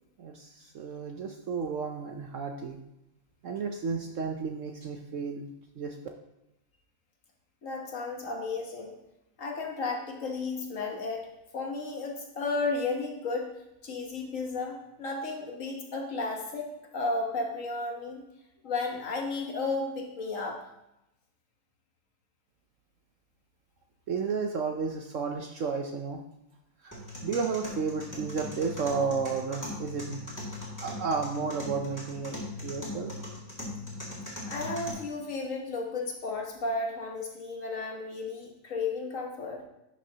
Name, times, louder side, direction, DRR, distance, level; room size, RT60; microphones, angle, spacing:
voice 1, 0.2-2.8 3.4-5.5 5.8-6.0 24.1-26.2 26.8-30.2 30.8-33.1, right 5 dB, 60° right, 4 dB, 0.8 m, -32 dB
voice 2, 7.6-8.9 9.4-11.3 11.5-13.5 13.8-18.2 18.6-20.6 34.5-39.6, left 3 dB, 55° left, 1 dB, 1.5 m, -33 dB
sound 1, 26.9-34.9, left 2 dB, 10° left, 2.3 m, -40 dB
11.0 x 6.3 x 2.8 m, 0.90 s
omnidirectional pair, 1.8 m